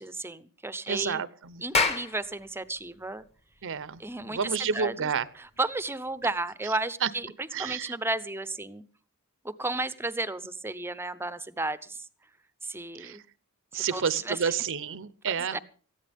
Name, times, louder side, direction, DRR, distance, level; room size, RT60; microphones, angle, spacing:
voice 1, 0.0-1.2 1.6-3.2 4.0-5.1 5.4-8.8 9.4-12.1 12.6-13.2 13.7-14.5 15.3-15.6, right 2 dB, 10° right, 15 dB, 0.7 m, -33 dB
voice 2, 0.9-1.6 3.6-5.3 7.0-7.1 7.5-7.9 13.0-13.2 13.7-15.6, right 6 dB, 60° right, 16 dB, 0.8 m, -30 dB
Clapping, 1.5-6.4, left 4 dB, 30° left, 1.3 m, -32 dB
19.0 x 14.5 x 3.6 m, 0.40 s
head